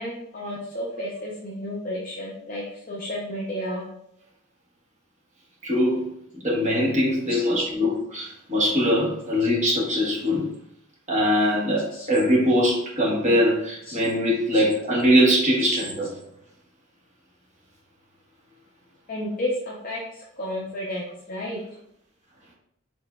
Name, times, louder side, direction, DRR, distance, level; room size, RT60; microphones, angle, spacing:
voice 1, 0.0-3.9 7.3-7.6 11.9-12.1 13.9-14.0 15.6-15.7 19.1-21.6, left 1 dB, 40° left, -4 dB, 0.6 m, -32 dB
voice 2, 5.6-10.5 11.1-16.1, equal, 30° right, -5 dB, 1.1 m, -22 dB
4.3 x 3.6 x 2.3 m, 0.73 s
head